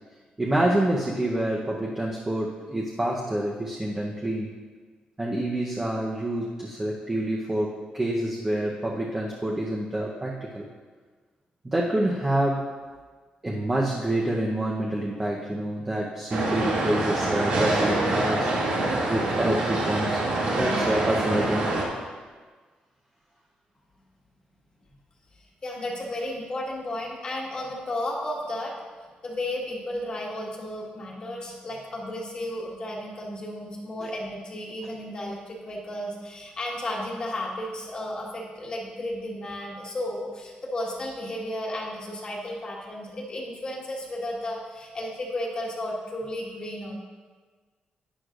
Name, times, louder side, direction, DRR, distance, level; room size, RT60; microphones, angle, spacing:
voice 1, 0.4-4.6 5.2-10.7 11.6-12.7 13.4-18.5 18.8-20.2 20.6-21.8, right 1 dB, 15° right, -3 dB, 0.8 m, -27 dB
sound 1, 16.3-21.9, right 2 dB, 75° right, 2.3 m, -25 dB
voice 2, 25.6-28.7 29.2-46.9, left 1 dB, 35° left, -3 dB, 1.5 m, -33 dB
11.0 x 9.7 x 2.5 m, 1.4 s
wide cardioid pair, 155°, 3 cm